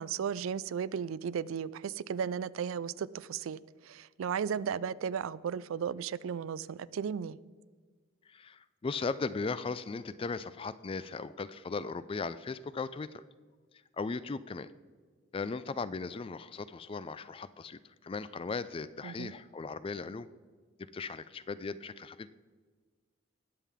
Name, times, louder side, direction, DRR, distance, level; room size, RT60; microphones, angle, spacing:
voice 1, 0.0-7.4 19.0-19.3, right 7 dB, 75° right, 0.3 m, -35 dB
voice 2, 8.3-13.2 14.0-14.7 15.3-20.3 20.9-22.3, left 4 dB, 25° left, 0.3 m, -37 dB
19.5 x 7.4 x 3.6 m
head